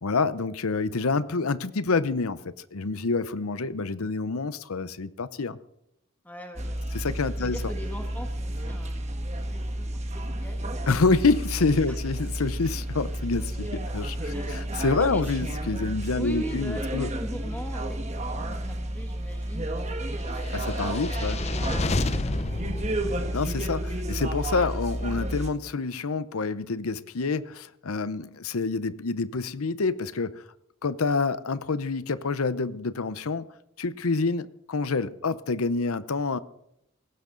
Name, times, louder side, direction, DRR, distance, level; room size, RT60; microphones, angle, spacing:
voice 1, 0.0-5.6 6.9-7.6 10.9-17.1 20.5-21.4 23.3-30.4 30.8-33.5 33.8-36.4, left 4 dB, 90° left, 0.8 m, -27 dB
voice 2, 6.2-10.7 11.9-12.0 14.3-14.6 15.0-15.3 16.1-20.0 20.6-22.8, equal, 10° left, 1.4 m, -41 dB
sound 1, 6.6-25.5, right 1 dB, 30° right, 1.5 m, -31 dB
sound 2, 20.4-23.8, left 2 dB, 30° left, 0.6 m, -31 dB
18.5 x 16.0 x 3.9 m
head